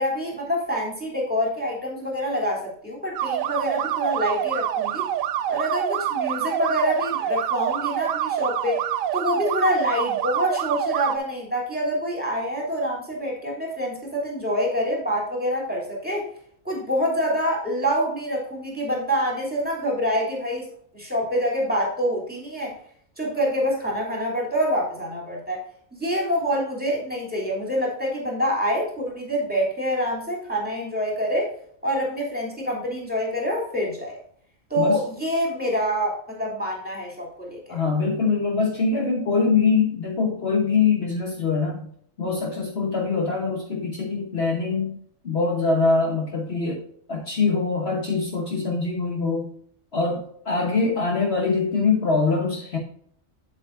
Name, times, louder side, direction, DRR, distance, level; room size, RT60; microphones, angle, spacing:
voice 1, 0.0-5.1 5.5-8.8 9.1-16.2 16.6-20.7 20.9-22.7 23.2-25.6 26.0-31.5 31.8-34.2 34.7-37.8, equal, 5° right, -3 dB, 3.1 m, -26 dB
sound 1, 3.1-11.2, right 11 dB, 80° right, 1.0 m, -26 dB
voice 2, 37.7-41.9 42.2-45.0 45.2-46.8 47.1-49.5 49.9-52.8, left 4 dB, 50° left, 0 dB, 1.4 m, -23 dB
8.4 x 7.8 x 2.6 m, 0.62 s
omnidirectional pair, 1.4 m